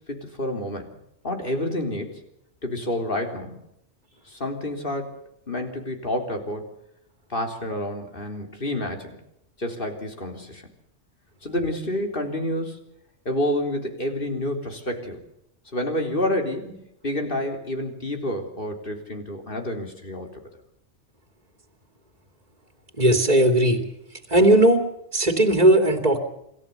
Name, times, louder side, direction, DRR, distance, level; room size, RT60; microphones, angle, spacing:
voice 1, 0.1-0.9 1.2-2.2 2.6-3.6 4.3-5.2 5.5-6.7 7.3-9.2 9.6-10.7 11.4-12.8 13.3-15.2 15.7-16.7 17.0-20.3, left 1 dB, 50° left, 4 dB, 3.8 m, -29 dB
voice 2, 23.0-23.8 24.3-24.8 25.1-26.2, right 1 dB, 35° right, 6 dB, 2.9 m, -17 dB
27.0 x 14.5 x 7.0 m, 0.80 s
omnidirectional pair, 1.2 m